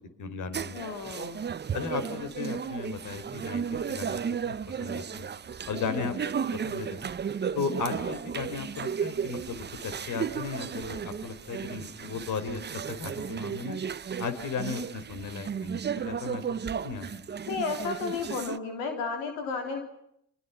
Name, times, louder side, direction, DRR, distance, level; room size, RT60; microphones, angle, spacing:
voice 1, 0.2-0.8 1.7-5.3 5.7-7.0 7.5-12.6 12.9-13.8 14.2-16.6 16.8-17.1, left 5 dB, 60° left, 10 dB, 4.5 m, -36 dB
sound 1, 0.5-18.6, right 7 dB, 30° right, 0.9 m, -34 dB
voice 2, 0.7-1.4 5.7-6.1 17.5-19.8, left 5 dB, 90° left, 5 dB, 3.5 m, -33 dB
29.5 x 25.0 x 5.8 m, 0.72 s
supercardioid pair, 80°, 35 cm